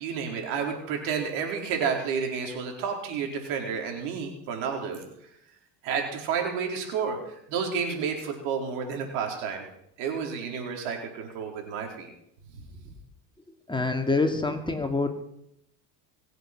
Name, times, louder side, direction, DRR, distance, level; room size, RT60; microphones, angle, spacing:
voice 1, 0.0-5.0 5.8-9.7 10.0-12.1, right 6 dB, 75° right, 2 dB, 4.7 m, -30 dB
voice 2, 13.7-15.1, left 3 dB, 10° left, 5 dB, 2.5 m, -26 dB
24.0 x 8.1 x 6.2 m, 0.76 s
hypercardioid pair, 85°, 47 cm